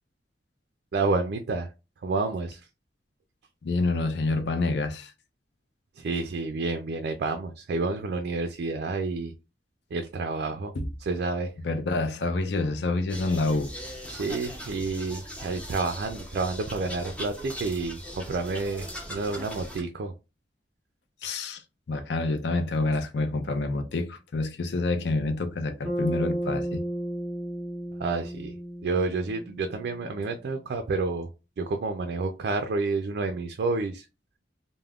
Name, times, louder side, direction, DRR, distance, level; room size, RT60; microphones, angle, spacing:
voice 1, 0.9-1.7 2.0-2.6 6.0-9.3 9.9-10.7 11.0-11.5 14.1-20.1 28.0-28.5 28.8-31.3 31.6-34.1, right 3 dB, 60° right, 0.3 m, -29 dB
voice 2, 3.6-5.1 10.8-10.9 11.6-13.7 21.2-21.6 21.9-26.8, left 2 dB, 70° left, 0.5 m, -27 dB
sound 1, 13.1-19.8, equal, 5° left, 0.5 m, -40 dB
Bass guitar, 25.8-30.2, right 1 dB, 10° right, 0.9 m, -33 dB
2.3 x 2.1 x 3.4 m
head